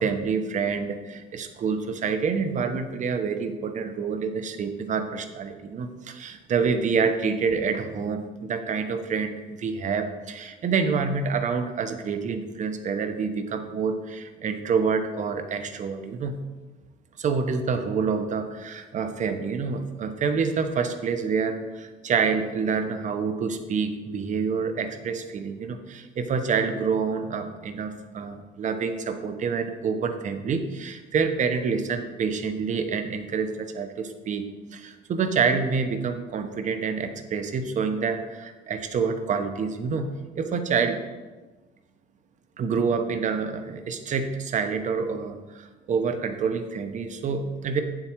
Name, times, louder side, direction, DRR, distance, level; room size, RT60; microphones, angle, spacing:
voice 1, 0.0-16.3 17.2-34.5 34.7-40.1 40.3-41.0 42.6-47.8, right 5 dB, 45° right, 8 dB, 1.0 m, -27 dB
8.7 x 7.6 x 4.6 m, 1.2 s
cardioid pair, 110°, 17 cm